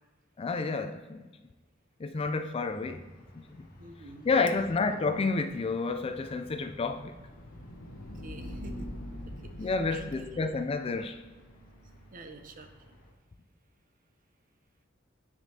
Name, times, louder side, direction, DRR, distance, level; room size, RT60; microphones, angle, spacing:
voice 1, 0.4-1.3 2.0-3.1 3.3-3.6 4.2-7.1 9.6-11.2, left 4 dB, 30° left, 8 dB, 0.3 m, -30 dB
sound 1, 2.7-13.1, equal, 45° left, 1.6 m, -55 dB
voice 2, 3.8-4.3 8.2-8.9 9.9-10.3 12.1-12.7, right 2 dB, 45° right, 6 dB, 0.7 m, -46 dB
sound 2, 6.3-12.7, equal, 70° left, 0.9 m, -45 dB
9.5 x 5.0 x 2.8 m, 1.3 s
head